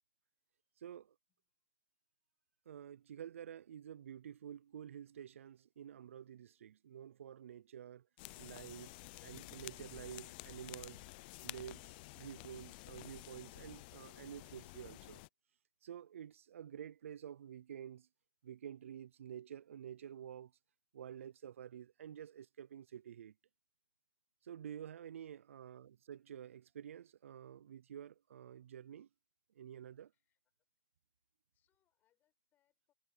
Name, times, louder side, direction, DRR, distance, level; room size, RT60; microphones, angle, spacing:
voice 1, 1.3-1.7 25.5-25.7 30.0-30.7 31.5-32.9, left 12 dB, 25° left, 7.7 m, -86 dB
voice 2, 2.7-8.1 8.4-11.0 11.4-15.2 15.8-18.1 18.4-20.5 20.9-23.3 24.4-29.1 29.5-30.1, right 9 dB, 80° right, 0.5 m, -50 dB
sound 1, 8.2-15.3, left 24 dB, 45° left, 0.5 m, -51 dB
hypercardioid pair, 130°, 7 cm